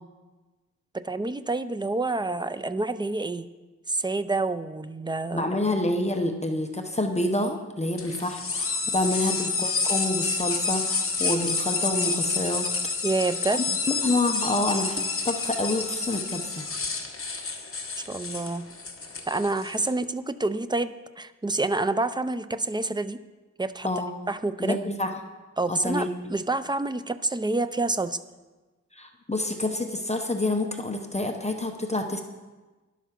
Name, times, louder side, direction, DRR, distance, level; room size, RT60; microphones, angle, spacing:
voice 1, 0.9-3.5 3.9-5.5 13.0-13.6 18.1-18.6 19.3-23.2 23.6-23.9 24.3-24.8 25.6-28.2, right 2 dB, 15° right, 12 dB, 0.4 m, -28 dB
voice 2, 5.3-12.7 13.7-16.7 23.8-24.2 24.6-25.1 25.7-26.1 29.0-32.2, left 2 dB, 25° left, 4 dB, 0.9 m, -28 dB
sound 1, 8.0-19.9, left 4 dB, 50° left, 1.2 m, -29 dB
11.0 x 8.3 x 5.9 m, 1.2 s
wide cardioid pair, 110°, 29 cm